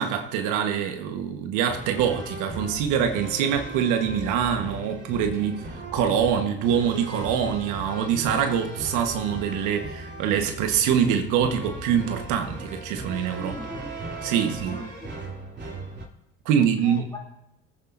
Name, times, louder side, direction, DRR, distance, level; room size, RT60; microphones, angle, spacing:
voice 1, 0.0-5.6 5.9-13.5 14.2-14.8 16.4-17.1, right 8 dB, 75° right, 1.3 m, -24 dB
sound 1, 1.7-16.0, right 2 dB, 35° right, 3.1 m, -37 dB
voice 2, 13.4-14.1 14.4-15.2 16.5-17.2, left 1 dB, 15° left, 2.9 m, -41 dB
24.5 x 8.7 x 2.6 m
supercardioid pair, 90°, 31 cm